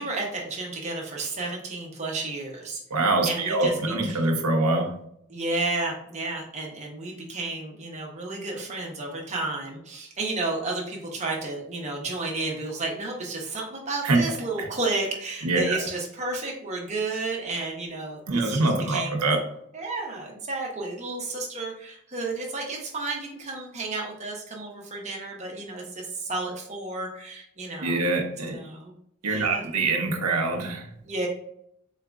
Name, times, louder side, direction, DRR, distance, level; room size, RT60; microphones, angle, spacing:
voice 1, 0.0-2.8 3.3-3.7 4.0-4.3 5.3-19.2 19.7-28.0 28.5-28.9 29.2-29.6 31.0-31.3, right 2 dB, 30° right, -1 dB, 0.9 m, -32 dB
voice 2, 2.9-4.9 14.0-14.7 15.4-15.8 18.3-19.4 27.8-28.6 29.2-30.9, right 2 dB, 85° right, 2 dB, 0.8 m, -24 dB
4.1 x 3.8 x 2.3 m, 0.71 s
head